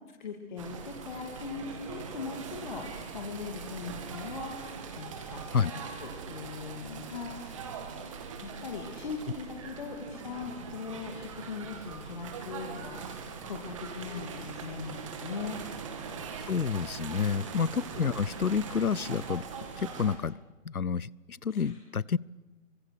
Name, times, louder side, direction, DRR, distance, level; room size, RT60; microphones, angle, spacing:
voice 1, 0.2-5.4 5.7-7.8 8.4-15.6 21.5-21.8, left 5 dB, 35° left, 1 dB, 2.8 m, -40 dB
sound 1, 0.6-20.2, right 6 dB, 20° right, 2.3 m, -41 dB
voice 2, 16.4-19.4 19.8-20.4 20.6-22.2, left 6 dB, 85° left, 25 dB, 0.8 m, -29 dB
28.5 x 25.0 x 6.7 m, 1.2 s
figure-of-eight pair, 150°, 42 cm